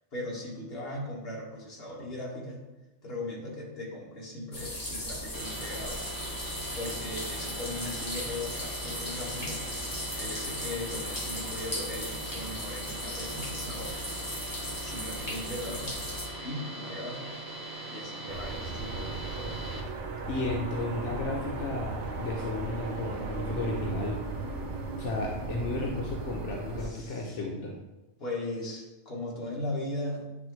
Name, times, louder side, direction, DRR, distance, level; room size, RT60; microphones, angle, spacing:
voice 1, 0.1-2.6 3.0-6.1 6.8-9.6 10.1-14.0 14.8-16.0 16.4-17.3 17.9-19.6 26.8-27.4 28.2-30.3, left 1 dB, 55° left, -4 dB, 1.8 m, -38 dB
sound 1, 4.5-16.3, left 1 dB, 20° left, 0.9 m, -37 dB
sound 2, 5.3-19.8, right 2 dB, 25° right, 0.6 m, -40 dB
sound 3, 18.3-26.9, right 3 dB, 75° right, 1.1 m, -36 dB
voice 2, 20.3-24.2 25.0-27.7, left 2 dB, 85° left, -1 dB, 1.1 m, -33 dB
9.1 x 3.4 x 3.1 m, 1.1 s
omnidirectional pair, 1.2 m